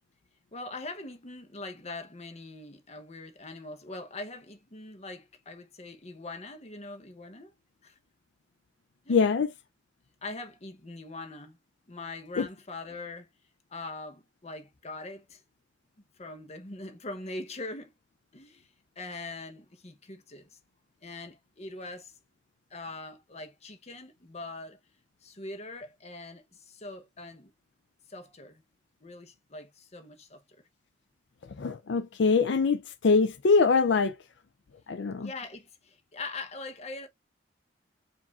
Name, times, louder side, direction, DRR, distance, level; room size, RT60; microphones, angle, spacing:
voice 1, 0.5-7.5 7.8-8.0 9.0-9.3 10.2-11.6 11.9-13.3 13.7-15.4 16.2-17.9 18.3-18.7 19.0-20.6 21.0-22.1 22.7-24.8 25.2-27.5 28.1-28.6 29.0-30.4 35.2-37.1, left 2 dB, 35° left, 0.9 m, -42 dB
voice 2, 9.1-9.5 12.4-12.5 31.6-34.2 34.9-35.3, left 4 dB, 70° left, 0.5 m, -23 dB
4.8 x 2.6 x 3.4 m
head